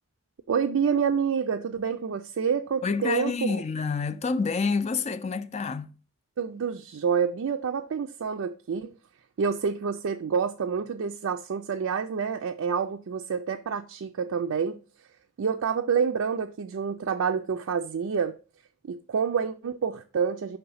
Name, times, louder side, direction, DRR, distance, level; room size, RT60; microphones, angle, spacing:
voice 1, 0.5-3.6 6.4-8.9 9.4-14.8 15.4-18.3 18.9-20.6, right 6 dB, 70° right, 0.4 m, -28 dB
voice 2, 2.8-5.9, left 4 dB, 30° left, 0.3 m, -28 dB
5.8 x 3.4 x 5.5 m
head